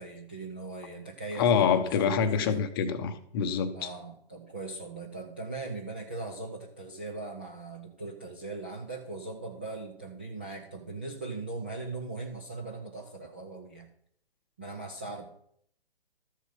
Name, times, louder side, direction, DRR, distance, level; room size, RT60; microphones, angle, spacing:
voice 1, 0.0-2.6 3.7-13.9 14.6-15.3, right 3 dB, 10° right, 0.4 m, -40 dB
voice 2, 1.4-3.9, left 7 dB, 20° left, 0.8 m, -26 dB
13.0 x 7.0 x 5.6 m
figure-of-eight pair, 135°, 31 cm